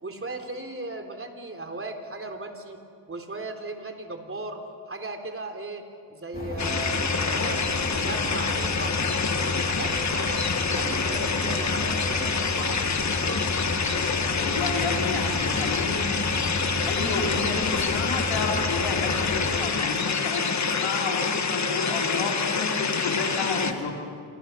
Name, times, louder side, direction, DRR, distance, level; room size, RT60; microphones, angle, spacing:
voice 1, 0.0-2.8 3.1-4.6 4.9-9.0 9.3-12.9 13.2-13.5, right 2 dB, 25° right, 4 dB, 3.4 m, -37 dB
sound 1, 6.3-19.6, left 1 dB, 20° left, 3.4 m, -33 dB
sound 2, 6.6-23.7, left 5 dB, 35° left, 1.7 m, -27 dB
voice 2, 14.3-16.1 16.8-24.0, left 4 dB, 85° left, -1 dB, 4.1 m, -30 dB
28.0 x 27.0 x 5.7 m, 2.3 s
cardioid pair, 85°, 47 cm